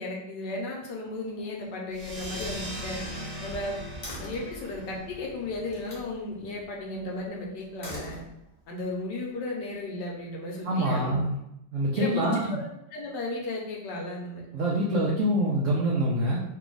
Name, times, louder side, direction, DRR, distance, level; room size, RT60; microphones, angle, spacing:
voice 1, 0.0-3.0 3.4-3.8 4.2-8.2 8.7-11.2 12.0-14.4, left 2 dB, 70° left, -1 dB, 1.4 m, -35 dB
Slam, 1.2-1.6 2.1-4.6 5.6-6.1 7.6-8.7, equal, 35° left, 0.8 m, -43 dB
sound 1, 1.9-7.0, equal, 45° right, 0.9 m, -40 dB
voice 2, 10.6-11.4 11.7-12.6 14.5-16.4, right 1 dB, 80° right, -4 dB, 0.7 m, -25 dB
3.4 x 2.3 x 3.8 m, 0.81 s
omnidirectional pair, 2.0 m